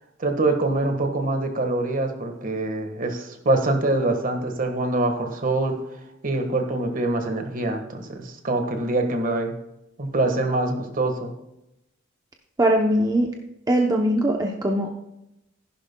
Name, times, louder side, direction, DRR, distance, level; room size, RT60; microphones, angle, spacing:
voice 1, 0.2-5.8 6.2-9.5 10.0-11.3, right 2 dB, 45° right, 5 dB, 1.5 m, -24 dB
voice 2, 12.6-13.3 13.7-14.9, right 1 dB, 20° right, 1 dB, 0.7 m, -21 dB
14.5 x 11.0 x 2.2 m, 0.88 s
head